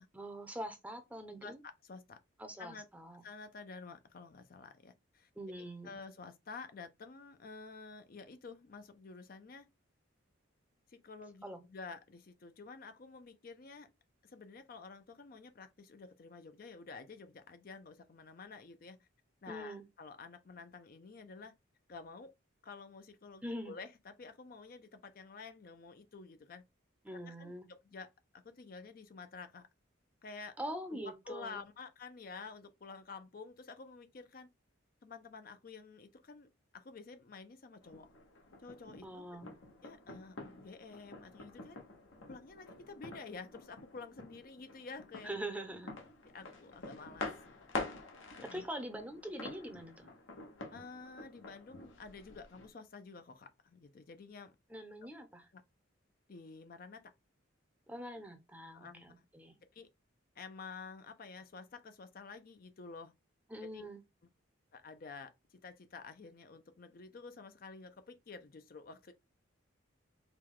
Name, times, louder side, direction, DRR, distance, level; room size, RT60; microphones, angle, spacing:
voice 1, 0.1-1.6 2.4-3.2 5.4-5.9 11.4-11.6 19.5-19.8 23.4-23.8 27.0-27.7 30.6-31.6 39.0-39.5 45.2-45.9 48.4-50.1 54.7-55.5 57.9-59.5 63.5-64.0, right 1 dB, 5° right, 0.6 m, -44 dB
voice 2, 1.8-2.2 2.6-2.9 3.2-5.3 5.8-9.7 10.9-13.9 14.2-19.1 19.4-21.5 21.9-22.3 22.6-26.6 27.1-29.7 30.2-30.6 30.9-34.5 35.0-38.1 38.6-39.4 39.8-41.8 42.3-45.6 46.3-47.6 48.4-48.7 50.7-54.5 55.5-55.6 56.3-57.1 58.2-58.3 58.7-59.2 59.7-59.9 60.4-63.1 63.6-63.9 64.7-69.1, left 4 dB, 45° left, 0.5 m, -50 dB
sound 1, 37.8-52.7, left 2 dB, 75° left, 1.1 m, -47 dB
4.6 x 2.3 x 3.7 m
head